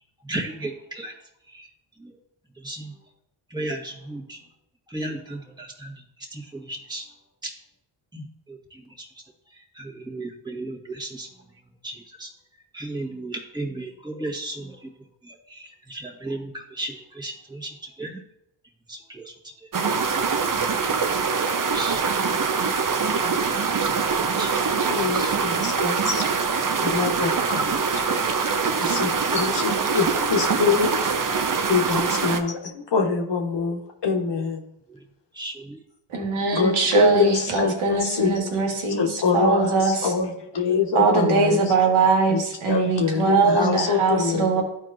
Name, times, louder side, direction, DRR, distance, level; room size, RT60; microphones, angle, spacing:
voice 1, 0.2-1.1 1.5-1.7 2.0-2.1 2.6-3.0 3.5-4.4 4.9-5.9 6.3-7.0 7.4-7.5 8.1-9.1 9.5-11.3 11.8-12.3 12.7-14.9 15.2-18.2 18.9-19.3 19.6-19.7 21.7-22.0 23.7-24.6 25.0-25.3 28.8-28.9 34.9-35.0 35.3-35.8 43.6-43.7, right 2 dB, 10° right, -1 dB, 1.5 m, -35 dB
sound 1, 19.7-32.4, right 5 dB, 40° right, 0.8 m, -24 dB
voice 2, 24.9-26.5 26.8-28.1 28.8-30.9 31.7-34.6 36.5-38.4 38.9-41.7 42.3-42.4 42.7-44.6, left 5 dB, 55° left, 2 dB, 1.3 m, -25 dB
voice 3, 36.1-40.1 40.9-44.6, right 4 dB, 75° right, 1 dB, 1.7 m, -21 dB
11.5 x 4.6 x 2.6 m, 0.81 s
supercardioid pair, 50°, 49 cm